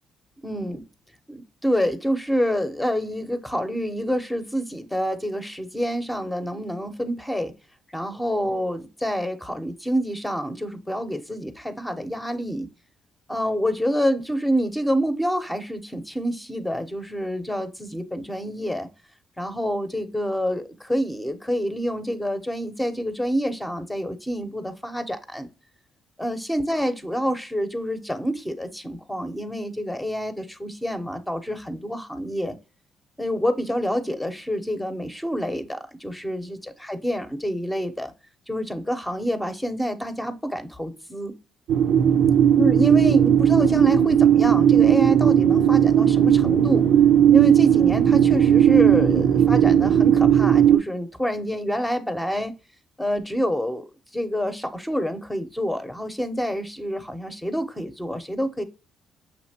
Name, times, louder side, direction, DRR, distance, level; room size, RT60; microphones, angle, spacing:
voice 1, 0.4-0.8 1.3-7.5 7.9-12.7 13.3-18.9 19.4-25.5 26.2-32.6 33.2-38.1 38.5-41.3 42.6-46.9 47.3-52.5 53.0-53.8 54.1-58.6, equal, 10° left, 0.8 m, -27 dB
sound 1, 41.7-50.8, right 9 dB, 80° right, 0.5 m, -17 dB
6.5 x 2.8 x 2.8 m
cardioid pair, 90°, 0 cm